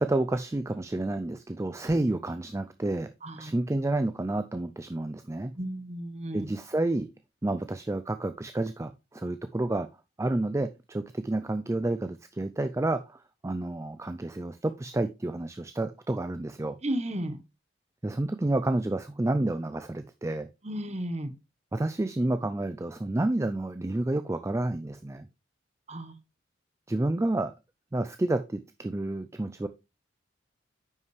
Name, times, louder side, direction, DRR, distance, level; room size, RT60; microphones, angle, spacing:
voice 1, 0.0-3.1 3.4-5.5 6.3-7.1 7.4-9.9 10.2-16.8 18.0-20.5 21.7-25.3 26.9-27.5 27.9-29.7, right 2 dB, 15° right, 0.3 m, -30 dB
voice 2, 3.2-3.6 5.5-6.5 16.8-17.4 20.6-21.3 25.9-26.2, right 1 dB, 35° right, 1.0 m, -33 dB
9.3 x 5.6 x 3.2 m
head